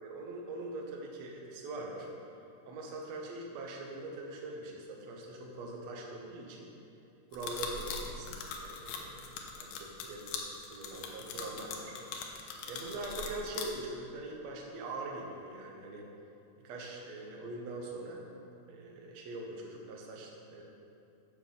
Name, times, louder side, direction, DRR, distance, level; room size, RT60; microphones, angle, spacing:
voice 1, 0.0-2.1 2.6-6.7 7.3-11.9 12.7-16.1 16.6-18.3 18.7-20.6, right 2 dB, 65° right, -1 dB, 1.8 m, -43 dB
sound 1, 7.3-13.6, left 6 dB, 90° left, 3.1 m, -40 dB
9.6 x 7.6 x 5.7 m, 2.7 s
omnidirectional pair, 4.8 m